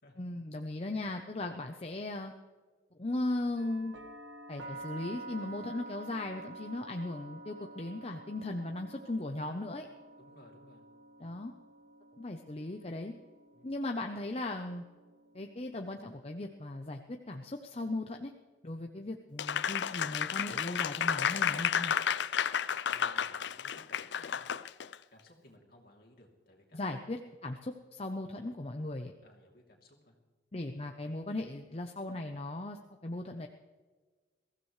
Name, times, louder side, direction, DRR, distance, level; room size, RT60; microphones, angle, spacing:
voice 1, 0.2-2.3 3.0-3.9 4.5-9.9 11.2-11.5 12.2-13.1 13.6-14.8 15.3-18.3 18.6-22.0 26.7-29.1 30.5-33.5, left 2 dB, 35° left, 4 dB, 0.7 m, -37 dB
sound 1, 3.6-17.4, right 2 dB, 80° right, 1.4 m, -50 dB
voice 2, 10.2-10.8 11.2-11.4 13.5-13.7 22.9-24.5 25.1-26.8 29.2-30.2, left 1 dB, 55° left, 1 dB, 2.9 m, -59 dB
Applause, 19.4-24.9, left 8 dB, 75° left, 0.5 m, -32 dB
22.5 x 15.0 x 3.2 m, 1.4 s
head